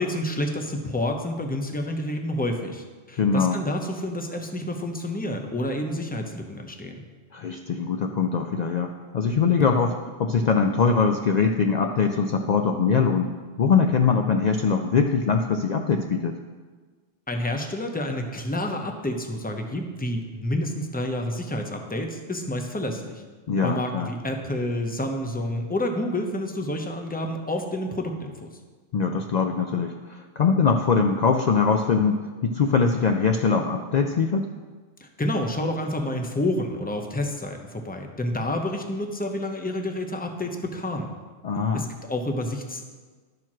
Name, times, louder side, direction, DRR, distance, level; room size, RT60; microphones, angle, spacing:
voice 1, 0.0-7.0 17.3-23.2 23.6-28.5 35.0-41.1 41.7-42.9, left 1 dB, 10° left, 4 dB, 0.6 m, -29 dB
voice 2, 3.2-3.6 7.3-13.3 13.6-16.4 23.5-24.1 28.9-34.5 41.4-41.9, left 5 dB, 70° left, 5 dB, 0.4 m, -22 dB
12.0 x 4.6 x 6.0 m, 1.4 s
omnidirectional pair, 1.3 m